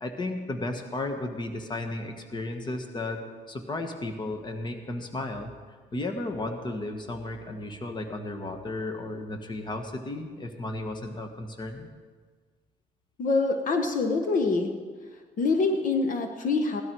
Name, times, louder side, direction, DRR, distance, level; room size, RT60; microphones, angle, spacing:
voice 1, 0.0-5.5 5.9-11.9, left 2 dB, 25° left, 5 dB, 1.5 m, -34 dB
voice 2, 13.2-14.7 15.4-16.8, left 3 dB, 50° left, 5 dB, 1.3 m, -25 dB
17.5 x 12.0 x 4.7 m, 1.5 s
cardioid pair, 110°, 17 cm